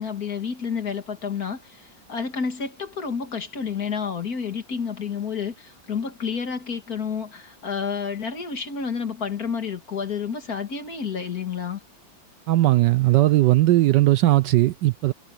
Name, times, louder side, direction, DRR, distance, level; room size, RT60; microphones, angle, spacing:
voice 1, 0.0-11.8, left 6 dB, 50° left, 2.4 m, -30 dB
voice 2, 12.5-15.1, right 16 dB, 75° right, 1.1 m, -18 dB
omnidirectional pair, 2.1 m